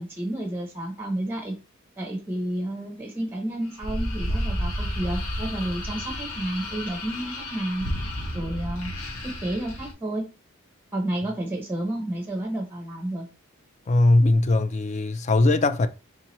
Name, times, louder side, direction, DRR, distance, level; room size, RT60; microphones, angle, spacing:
voice 1, 0.0-1.6 2.0-7.9 8.3-8.9 9.2-10.2 10.9-13.3, right 1 dB, 10° right, 0.6 m, -30 dB
sound 1, 3.8-9.9, equal, 85° left, 1.3 m, -31 dB
voice 2, 13.9-15.9, left 2 dB, 35° left, 0.4 m, -20 dB
4.4 x 3.5 x 3.0 m
head